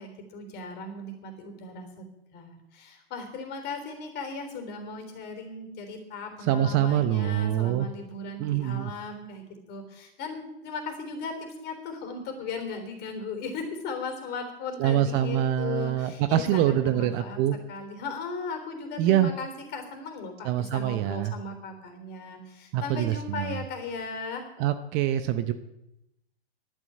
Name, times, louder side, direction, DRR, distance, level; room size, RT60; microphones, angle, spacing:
voice 1, 0.0-2.1 2.3-17.4 17.7-24.4, left 4 dB, 30° left, 6 dB, 3.6 m, -37 dB
voice 2, 6.5-7.9 8.4-8.9 14.8-17.6 19.0-19.3 20.4-21.3 22.7-23.6 24.6-25.5, right 11 dB, 35° right, 11 dB, 0.8 m, -25 dB
11.5 x 9.1 x 8.7 m, 0.88 s
hypercardioid pair, 120°, 31 cm